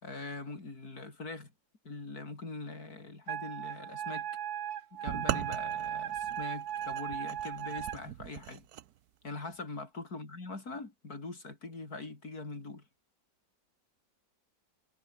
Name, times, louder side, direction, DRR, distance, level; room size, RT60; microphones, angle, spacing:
voice 1, 0.0-1.5 1.8-4.3 4.9-8.7 9.2-12.8, left 3 dB, 50° left, 4.9 m, -42 dB
Wind instrument woodwind instrument, 3.3-8.0, right 10 dB, 80° right, 1.9 m, -37 dB
sound 1, 5.1-8.9, right 12 dB, 65° right, 1.2 m, -39 dB
omnidirectional pair, 2.0 m